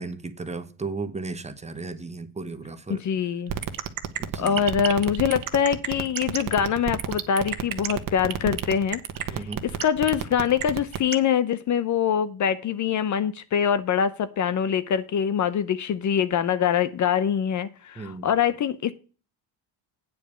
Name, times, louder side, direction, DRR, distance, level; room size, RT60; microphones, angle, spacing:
voice 1, 0.0-3.0 4.2-4.7 9.3-9.7 18.0-18.3, right 3 dB, 15° right, 1.0 m, -35 dB
voice 2, 2.9-3.5 4.3-9.0 9.3-18.9, left 8 dB, 40° left, 0.6 m, -24 dB
sound 1, 3.5-11.1, right 11 dB, 50° right, 1.2 m, -28 dB
9.0 x 5.2 x 6.8 m
cardioid pair, 130°, 44 cm